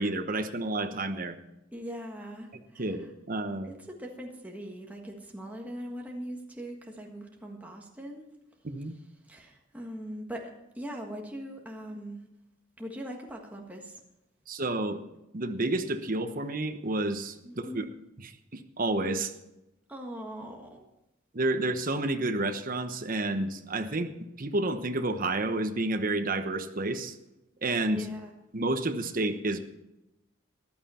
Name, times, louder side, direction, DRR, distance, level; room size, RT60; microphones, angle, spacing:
voice 1, 0.0-1.4 2.8-3.7 8.6-8.9 14.5-15.0 15.3-17.8 18.2-19.3 21.3-24.1 24.4-27.2 27.6-28.1 28.5-29.6, right 2 dB, 45° right, 7 dB, 1.1 m, -30 dB
voice 2, 1.7-3.0 3.6-8.3 9.3-10.5 10.7-12.2 12.8-14.0 17.4-17.9 19.9-20.8 27.9-28.3, equal, 10° right, 0 dB, 1.5 m, -41 dB
14.5 x 11.5 x 4.3 m, 0.91 s
head